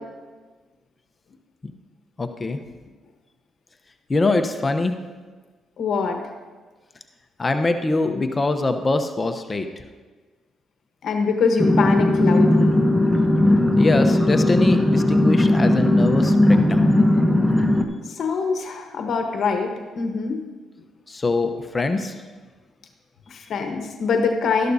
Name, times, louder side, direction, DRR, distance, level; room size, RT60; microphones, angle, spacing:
voice 1, 2.2-2.6 4.1-5.0 7.4-9.7 13.8-17.0 21.1-22.2, left 2 dB, 25° left, 7 dB, 0.8 m, -23 dB
voice 2, 5.8-6.2 11.0-12.8 18.0-20.4 23.3-24.7, left 5 dB, 60° left, 4 dB, 1.1 m, -24 dB
sound 1, 11.6-17.8, left 1 dB, ahead, 0.9 m, -17 dB
12.5 x 12.0 x 2.7 m, 1.4 s
cardioid pair, 90°, 0 cm